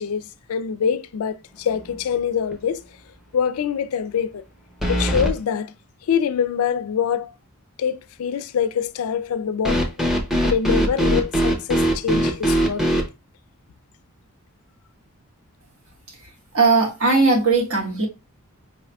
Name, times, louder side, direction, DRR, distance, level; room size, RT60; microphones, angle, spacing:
voice 1, 0.0-2.8 3.3-4.4 4.9-5.7 6.1-7.3 7.8-9.9 10.4-13.0, left 7 dB, 80° left, 0.4 m, -24 dB
sound 1, 1.7-2.2 2.5-2.6 4.8-5.3 9.6-13.1, equal, ahead, 0.7 m, -21 dB
voice 2, 16.5-18.1, right 3 dB, 65° right, 1.5 m, -18 dB
4.7 x 3.5 x 2.2 m
head